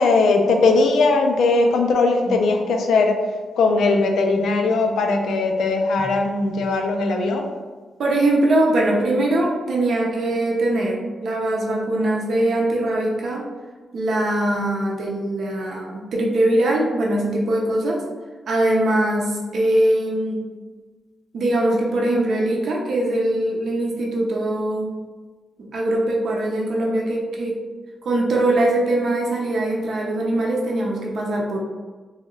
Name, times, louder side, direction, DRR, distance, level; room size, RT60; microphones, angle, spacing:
voice 1, 0.0-3.2 3.6-7.5, left 3 dB, 85° left, 3 dB, 0.4 m, -19 dB
voice 2, 8.0-13.5 13.9-18.0 18.5-20.4 21.3-25.0 25.7-27.6 28.0-31.6, right 1 dB, 70° right, -2 dB, 0.6 m, -21 dB
2.7 x 2.3 x 3.0 m, 1.3 s
cardioid pair, 80°, 0 cm